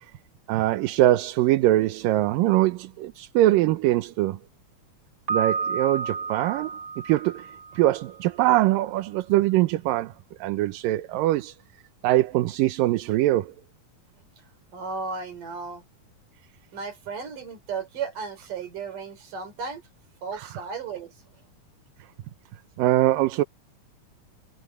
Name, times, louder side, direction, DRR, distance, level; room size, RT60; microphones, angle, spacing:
voice 1, 0.5-4.4 5.3-6.7 7.0-10.1 10.4-11.6 12.0-13.5 20.4-20.5 22.8-23.4, right 16 dB, 85° right, 2.5 m, -22 dB
Piano, 5.3-8.2, right 5 dB, 25° right, 2.2 m, -31 dB
voice 2, 14.7-15.8 16.7-19.8 20.2-21.1, right 5 dB, 70° right, 5.8 m, -34 dB
omnidirectional pair, 3.8 m